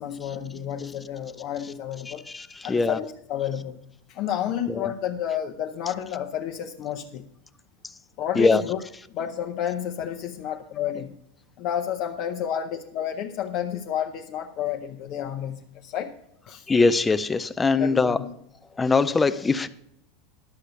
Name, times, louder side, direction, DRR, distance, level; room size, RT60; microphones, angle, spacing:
voice 1, 0.0-2.2 2.6-3.8 4.1-7.2 8.2-8.8 9.1-11.1 11.6-16.1 16.5-16.7 17.8-18.3, left 10 dB, 40° left, 0.7 m, -30 dB
voice 2, 2.1-3.0 4.7-4.9 8.4-8.6 16.7-18.2 18.8-19.7, left 4 dB, 10° left, 0.4 m, -22 dB
11.5 x 6.6 x 6.9 m
supercardioid pair, 170°, 0 cm